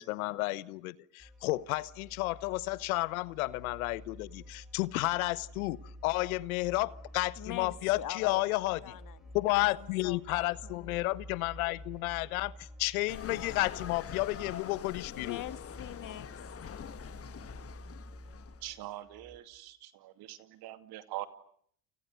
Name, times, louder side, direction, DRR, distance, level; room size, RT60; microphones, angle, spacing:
voice 1, 0.0-9.0 9.3-15.4, left 20 dB, 80° left, 1.1 m, -32 dB
sound 1, 1.2-19.4, equal, ahead, 7.1 m, -50 dB
voice 2, 7.4-8.5 8.8-11.0 15.1-16.3, left 13 dB, 50° left, 1.7 m, -44 dB
sound 2, 13.1-18.7, left 8 dB, 35° left, 1.3 m, -44 dB
voice 3, 18.6-19.9 20.3-21.3, right 15 dB, 60° right, 2.6 m, -42 dB
29.5 x 29.5 x 6.7 m
hypercardioid pair, 85°, 42 cm